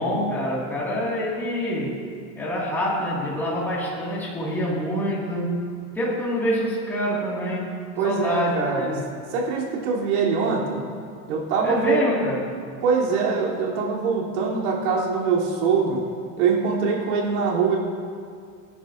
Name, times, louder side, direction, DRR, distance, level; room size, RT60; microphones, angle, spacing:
voice 1, 0.0-2.0 2.4-5.6 5.9-7.7 8.0-9.0 11.6-12.4, equal, 5° left, -7 dB, 2.2 m, -26 dB
voice 2, 8.0-8.9 9.3-10.9 11.3-12.1 12.8-16.1 16.4-17.8, right 5 dB, 90° right, -4 dB, 3.6 m, -23 dB
26.0 x 11.0 x 2.7 m, 2.3 s
supercardioid pair, 175°, 43 cm